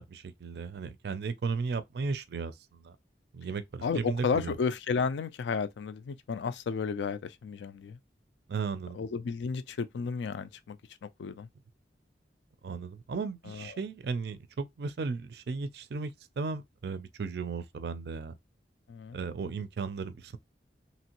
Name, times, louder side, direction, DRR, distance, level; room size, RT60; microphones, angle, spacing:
voice 1, 0.0-3.0 3.3-4.5 8.5-9.0 12.6-18.3 19.1-20.4, right 4 dB, 60° right, 0.4 m, -35 dB
voice 2, 3.8-8.0 8.9-11.5 13.5-13.8 18.9-19.2, left 5 dB, 80° left, 0.4 m, -33 dB
3.0 x 2.5 x 2.9 m
head